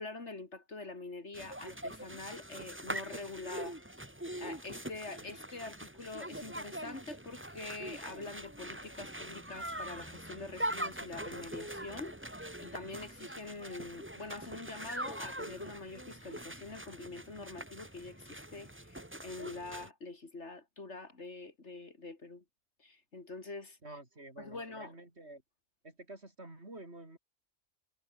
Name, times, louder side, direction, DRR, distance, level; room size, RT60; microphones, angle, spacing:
voice 1, 0.0-3.8 4.4-22.4 22.8-23.8 24.4-24.9, left 3 dB, 60° left, 3.1 m, -45 dB
sound 1, 1.3-19.9, right 1 dB, 10° right, 2.3 m, -43 dB
voice 2, 23.8-25.4 25.8-27.2, right 2 dB, 55° right, 5.1 m, -49 dB
omnidirectional pair, 1.4 m